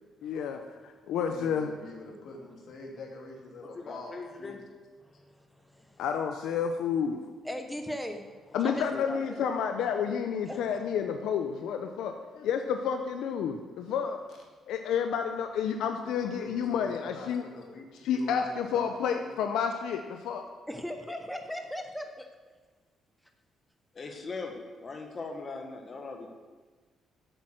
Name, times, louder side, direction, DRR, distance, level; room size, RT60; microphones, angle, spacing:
voice 1, 0.2-1.7 6.0-7.2 8.5-14.2 14.7-17.4 18.0-20.4, left 7 dB, 85° left, 5 dB, 0.6 m, -30 dB
voice 2, 1.2-4.6 16.1-19.3, left 2 dB, 65° left, 0 dB, 2.3 m, -45 dB
voice 3, 3.6-4.6 8.6-9.2 23.9-26.3, left 3 dB, 40° left, 3 dB, 1.6 m, -40 dB
voice 4, 5.0-6.0 7.4-8.8 9.3-9.5 10.5-10.6 20.7-22.3, equal, ahead, 5 dB, 0.9 m, -39 dB
8.4 x 7.9 x 6.4 m, 1.4 s
cardioid pair, 90°, 0 cm